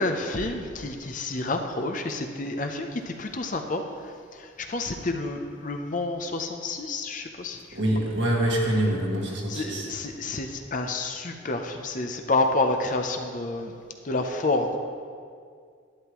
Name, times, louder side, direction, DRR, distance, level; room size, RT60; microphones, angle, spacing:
voice 1, 0.0-7.6 8.1-8.3 9.5-13.7 14.0-14.8, left 2 dB, 40° left, 5 dB, 0.6 m, -29 dB
voice 2, 7.7-9.9, right 1 dB, 65° right, -2 dB, 1.8 m, -25 dB
11.5 x 10.5 x 3.0 m, 2.1 s
head